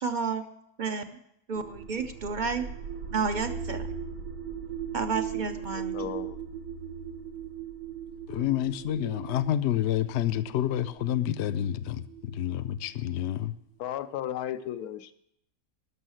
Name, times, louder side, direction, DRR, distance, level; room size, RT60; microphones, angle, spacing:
voice 1, 0.0-0.4 0.8-1.2 1.5-2.7 3.1-3.9 4.9-6.0, right 5 dB, 55° right, 0.5 m, -31 dB
sound 1, 1.5-13.3, right 8 dB, 80° right, 1.3 m, -39 dB
voice 2, 5.7-6.4 13.8-15.1, left 11 dB, 85° left, 1.1 m, -35 dB
voice 3, 8.3-13.6, left 11 dB, 65° left, 0.7 m, -29 dB
12.5 x 6.4 x 7.6 m
omnidirectional pair, 1.5 m